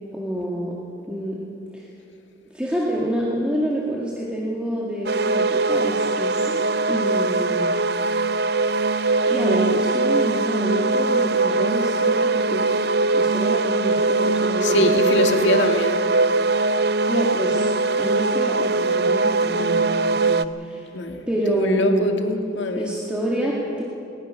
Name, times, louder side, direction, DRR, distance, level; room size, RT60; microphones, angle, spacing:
voice 1, 0.1-0.8 1.1-1.4 1.7-1.9 2.5-7.7 9.3-12.7 13.1-15.5 17.1-17.7 18.0-20.9 21.3-22.1 22.8-23.8, right 1 dB, 5° right, -5 dB, 2.0 m, -27 dB
sound 1, 5.1-20.5, right 3 dB, 55° right, 0.5 m, -21 dB
voice 2, 14.6-16.0 20.9-22.9, left 1 dB, 75° left, 4 dB, 2.0 m, -23 dB
21.0 x 19.5 x 6.5 m, 2.6 s
head